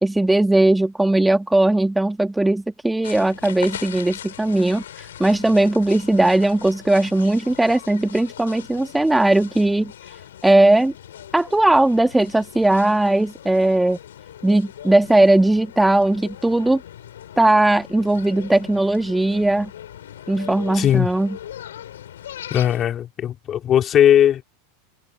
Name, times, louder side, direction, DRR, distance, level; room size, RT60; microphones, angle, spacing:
voice 1, 0.0-9.9 10.4-10.9 11.3-14.0 14.4-16.8 17.4-19.7 20.3-21.4, right 2 dB, 5° right, 1.9 m, -18 dB
sound 1, 3.0-22.9, left 11 dB, 70° left, 5.3 m, -40 dB
voice 2, 20.7-21.1 22.5-24.4, left 10 dB, 35° left, 2.9 m, -18 dB
figure-of-eight pair, 90°, 0 cm